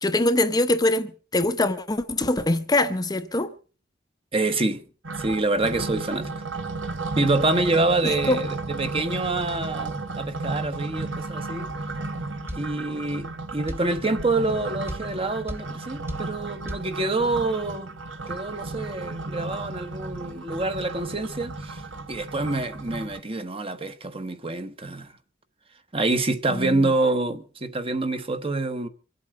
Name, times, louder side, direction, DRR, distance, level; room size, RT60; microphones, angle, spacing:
voice 1, 0.0-3.5 8.0-8.4 26.5-26.9, left 2 dB, 20° left, 0.8 m, -23 dB
voice 2, 4.3-4.8 5.2-6.3 7.2-11.7 12.5-13.3 13.5-17.9 18.3-21.8 22.1-25.1 25.9-28.9, right 2 dB, 30° right, 1.2 m, -26 dB
sound 1, 5.0-23.2, right 3 dB, 80° right, 1.8 m, -34 dB
sound 2, 12.5-12.7 13.7-13.9 14.9-15.1 15.5-15.7 16.1-16.3 16.7-16.9, equal, 15° right, 1.2 m, -34 dB
24.5 x 8.4 x 6.4 m
head